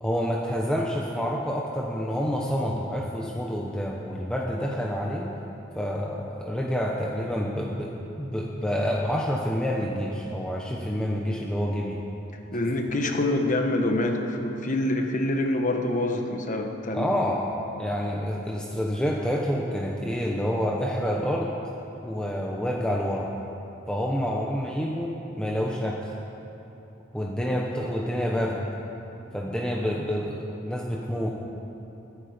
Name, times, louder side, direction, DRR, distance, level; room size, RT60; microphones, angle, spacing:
voice 1, 0.0-5.3 5.7-7.9 8.2-12.0 16.9-17.5 17.8-21.5 22.0-23.3 23.9-26.1 27.1-28.6 29.3-31.3, equal, 5° left, -2 dB, 1.0 m, -28 dB
voice 2, 12.5-17.1, left 1 dB, 40° left, 3 dB, 1.3 m, -26 dB
21.0 x 11.5 x 5.1 m, 3.0 s
head